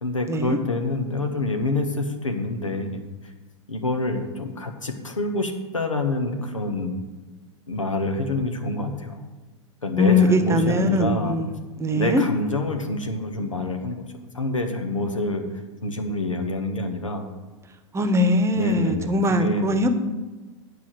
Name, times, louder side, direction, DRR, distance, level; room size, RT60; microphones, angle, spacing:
voice 1, 0.0-3.3 3.7-7.0 7.7-9.2 9.8-11.4 11.9-14.0 14.3-15.4 15.8-17.2 18.5-19.6, left 2 dB, 85° left, 5 dB, 1.5 m, -27 dB
voice 2, 10.0-12.2 17.9-19.9, left 1 dB, 15° right, 8 dB, 1.0 m, -21 dB
9.8 x 4.9 x 8.0 m, 1.2 s
figure-of-eight pair, 90°, 16 cm